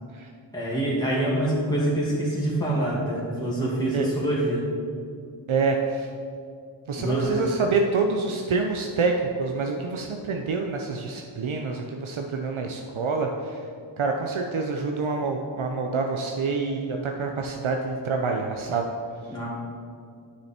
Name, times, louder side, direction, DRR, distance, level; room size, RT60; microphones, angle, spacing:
voice 1, 0.5-4.7 7.0-7.4 19.3-19.5, right 1 dB, 10° left, -7 dB, 2.1 m, -25 dB
voice 2, 5.5-6.1 6.9-13.7 14.0-18.8, right 4 dB, 80° right, 3 dB, 0.7 m, -27 dB
9.7 x 6.4 x 4.4 m, 2.3 s
wide cardioid pair, 50°, 48 cm